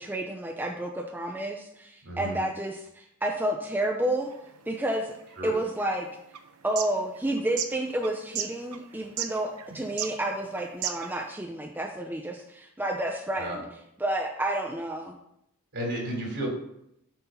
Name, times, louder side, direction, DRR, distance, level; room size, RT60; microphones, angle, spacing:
voice 1, 0.0-4.3 4.7-5.1 5.4-6.1 6.6-13.6 14.0-15.2, right 1 dB, 10° right, 1 dB, 0.7 m, -30 dB
voice 2, 2.0-2.4 5.4-5.5 13.4-13.6 15.7-16.5, right 1 dB, 55° right, 0 dB, 3.4 m, -32 dB
sound 1, 4.2-11.3, right 10 dB, 80° right, 0.8 m, -36 dB
8.0 x 6.3 x 5.7 m, 0.78 s
head